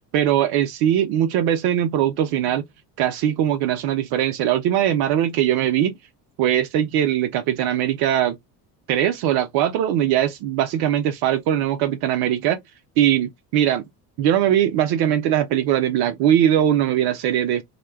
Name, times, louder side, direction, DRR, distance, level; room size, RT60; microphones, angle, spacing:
voice 1, 0.1-2.6 3.0-5.9 6.4-8.4 8.9-12.6 13.0-13.8 14.2-17.6, right 11 dB, 55° right, 0.5 m, -20 dB
2.2 x 2.1 x 3.1 m
hypercardioid pair, 65°, 49 cm